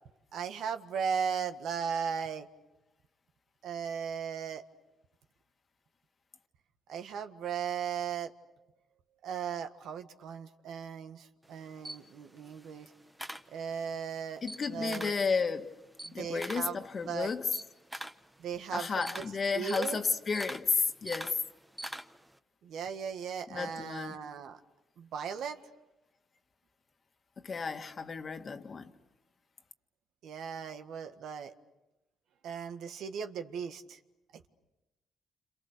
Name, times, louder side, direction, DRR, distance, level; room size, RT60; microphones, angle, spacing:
voice 1, 0.3-2.5 3.6-4.6 6.9-8.3 9.2-12.9 13.5-14.4 14.7-15.1 16.2-17.3 18.4-18.9 19.5-20.0 22.6-24.6 25.0-25.6 30.2-31.5 32.4-34.0, right 7 dB, 75° right, 1.6 m, -37 dB
Camera, 11.4-14.0 14.4-15.3 15.6-22.4, right 1 dB, 10° right, 1.2 m, -44 dB
voice 2, 14.4-15.8 16.1-17.5 18.7-21.4 23.5-24.2 27.4-28.9, left 5 dB, 40° left, 1.8 m, -32 dB
29.5 x 27.5 x 6.7 m
cardioid pair, 90°, 0 cm